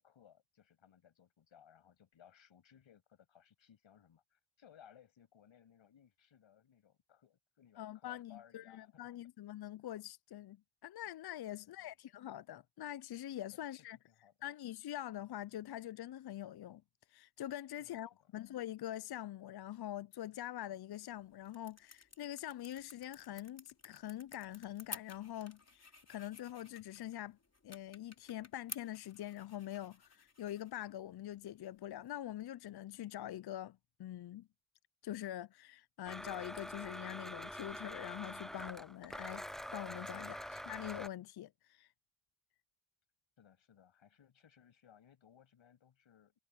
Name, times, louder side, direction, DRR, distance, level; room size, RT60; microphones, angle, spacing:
voice 1, 0.0-9.1 11.5-11.9 13.5-14.3 17.8-18.3 40.1-40.5 43.4-46.4, left 9 dB, 90° left, 7.8 m, -64 dB
voice 2, 7.8-10.6 10.8-14.0 14.4-16.8 17.1-27.4 27.6-34.5 35.0-39.4 39.7-41.9, left 12 dB, 55° left, 0.5 m, -44 dB
sound 1, 20.8-32.4, left 3 dB, 35° left, 3.6 m, -55 dB
Domestic sounds home sounds, 36.0-41.1, equal, ahead, 0.5 m, -45 dB
cardioid pair, 45°, 45 cm